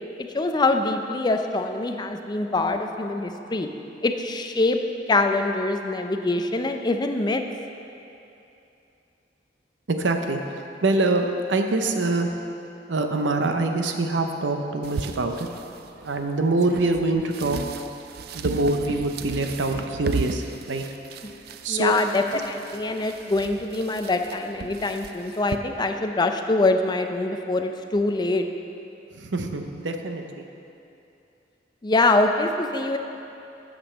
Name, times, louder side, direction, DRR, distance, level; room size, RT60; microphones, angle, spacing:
voice 1, 0.2-3.7 4.0-4.8 5.1-7.4 21.7-28.5 31.8-33.0, left 2 dB, 25° left, 6 dB, 0.4 m, -24 dB
voice 2, 9.9-10.4 10.8-12.3 12.9-15.5 16.0-17.6 18.3-20.8 21.6-21.9 29.1-30.4, right 2 dB, 90° right, 5 dB, 0.7 m, -24 dB
sound 1, 14.8-25.6, right 5 dB, 60° right, 0.3 m, -36 dB
8.8 x 5.2 x 6.4 m, 2.8 s
head